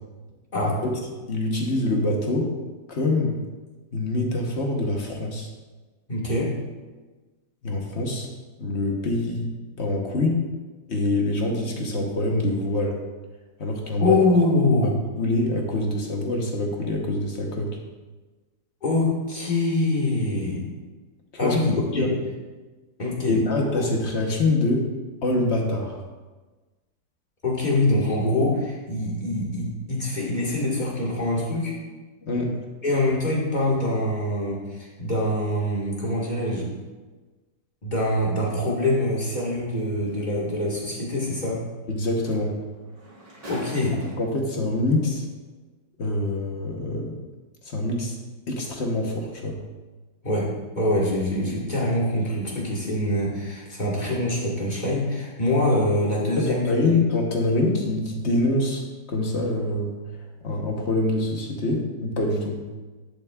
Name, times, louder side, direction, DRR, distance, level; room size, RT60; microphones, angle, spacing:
voice 1, 0.6-0.9 1.3-2.5 2.9-3.3 3.9-5.5 7.6-8.3 8.6-9.5 9.8-10.4 10.9-13.0 13.6-14.2 15.2-17.8 21.4-21.6 21.9-22.1 23.3-24.9 25.2-26.0 32.2-32.5 41.9-42.6 44.2-45.2 46.0-47.2 47.6-48.2 48.5-49.6 56.4-60.0 60.4-62.6, left 2 dB, 45° left, 1 dB, 1.2 m, -25 dB
voice 2, 6.1-6.5 14.0-15.0 18.8-20.6 21.4-22.1 23.0-23.4 23.7-23.9 27.4-31.7 32.8-36.7 37.8-41.6 43.5-44.0 50.2-50.5 50.7-57.0, left 1 dB, 25° left, -4 dB, 1.7 m, -24 dB
sound 1, 40.1-40.2 41.9-42.0 42.3-44.5 45.4-45.5, right 1 dB, 40° right, 2.1 m, -41 dB
10.5 x 8.1 x 2.4 m, 1.3 s
omnidirectional pair, 1.9 m